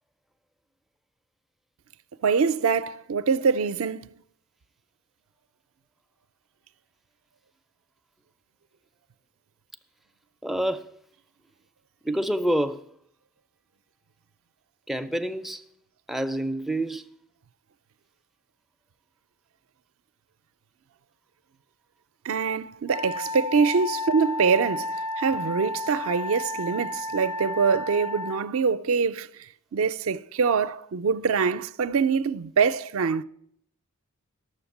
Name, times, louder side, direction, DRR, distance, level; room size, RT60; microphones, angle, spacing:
voice 1, 2.2-4.1 22.2-29.3 29.7-33.2, right 5 dB, 70° right, 0.4 m, -24 dB
voice 2, 10.4-10.9 12.0-12.9 14.9-15.6 16.1-17.1, right 1 dB, ahead, 0.4 m, -27 dB
Wind instrument woodwind instrument, 22.9-28.4, left 2 dB, 80° left, 0.7 m, -32 dB
11.5 x 7.1 x 7.1 m
head